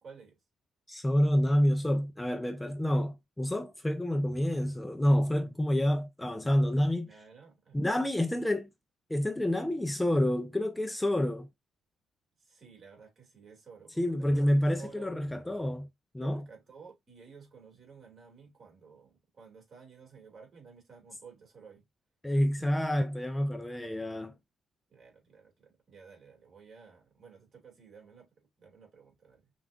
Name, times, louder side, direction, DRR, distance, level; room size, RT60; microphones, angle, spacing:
voice 1, 0.0-0.4 7.1-8.4 12.4-15.2 16.2-21.9 22.3-22.7 24.9-28.3 28.6-29.5, right 5 dB, 50° right, 2.1 m, -53 dB
voice 2, 0.9-7.1 7.7-8.7 9.1-11.5 14.0-15.9 16.1-16.4 22.2-24.3, left 1 dB, 10° left, 0.4 m, -28 dB
5.5 x 2.4 x 2.4 m
cardioid pair, 90°, 0 cm